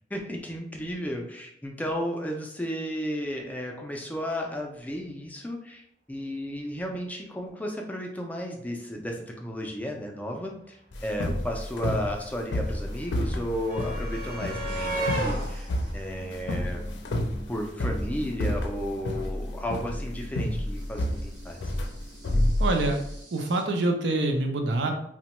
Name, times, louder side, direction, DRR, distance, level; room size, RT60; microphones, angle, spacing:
voice 1, 0.1-17.0 17.5-21.6, equal, 10° left, 1 dB, 0.3 m, -34 dB
sound 1, 10.9-23.1, left 1 dB, 80° left, 0.5 m, -29 dB
sound 2, 10.9-11.0 11.2-17.3 18.5-18.7 18.9-19.1, right 1 dB, 50° right, 0.7 m, -36 dB
sound 3, 14.7-23.6, right 1 dB, 75° right, 1.1 m, -49 dB
voice 2, 22.6-23.0 23.3-24.9, right 2 dB, 90° right, 3 dB, 0.5 m, -25 dB
2.8 x 2.1 x 2.9 m, 0.71 s
head